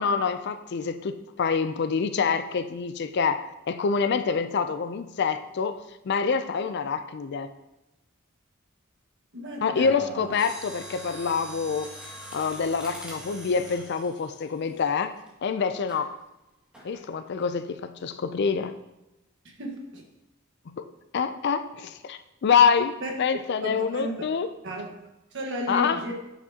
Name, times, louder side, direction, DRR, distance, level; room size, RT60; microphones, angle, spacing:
voice 1, 0.0-7.5 9.6-11.9 12.3-15.2 15.4-16.1 16.8-18.7 20.7-24.5 25.7-26.0, left 6 dB, 55° left, 10 dB, 0.4 m, -26 dB
voice 2, 9.3-10.3 19.6-20.0 23.0-24.1 24.6-26.1, equal, 60° right, 1 dB, 1.4 m, -34 dB
Mechanisms, 10.3-15.3 15.9-16.1 16.7-17.1 17.4-17.5, equal, 5° right, 1.8 m, -43 dB
9.3 x 5.8 x 2.8 m, 0.96 s
head